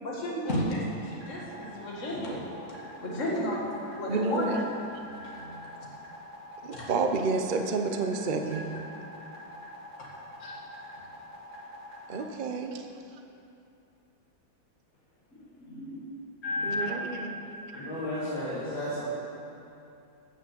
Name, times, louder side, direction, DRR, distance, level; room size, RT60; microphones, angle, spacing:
voice 1, 0.0-2.4 3.0-4.5 5.0-5.7 6.7-6.8 8.4-8.5 10.4-10.5 11.0-11.1 15.7-16.0 16.4-17.2 17.7-17.8 18.1-18.2, left 1 dB, 40° left, -4 dB, 2.3 m, -33 dB
sound 1, 0.9-12.3, equal, 85° right, 2.7 m, -46 dB
voice 2, 4.1-4.6 6.6-8.6 12.1-12.9 16.6-17.3, right 3 dB, 50° right, 4 dB, 0.6 m, -29 dB
voice 3, 17.7-19.0, left 1 dB, 85° left, -10 dB, 3.4 m, -33 dB
14.0 x 6.1 x 7.6 m, 2.7 s
omnidirectional pair, 2.0 m